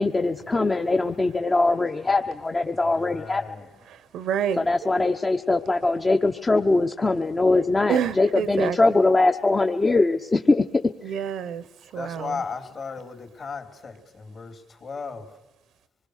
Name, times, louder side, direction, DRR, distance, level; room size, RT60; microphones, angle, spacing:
voice 1, 0.0-3.4 4.6-10.6, left 3 dB, 25° left, 5 dB, 0.9 m, -22 dB
voice 2, 2.9-3.7 11.9-15.3, left 5 dB, 50° left, 5 dB, 3.6 m, -36 dB
voice 3, 4.1-4.7 7.9-8.8 11.0-11.6 11.9-12.4, right 8 dB, 80° right, 16 dB, 1.0 m, -27 dB
25.5 x 20.5 x 6.6 m, 1.0 s
cardioid pair, 90°, 0 cm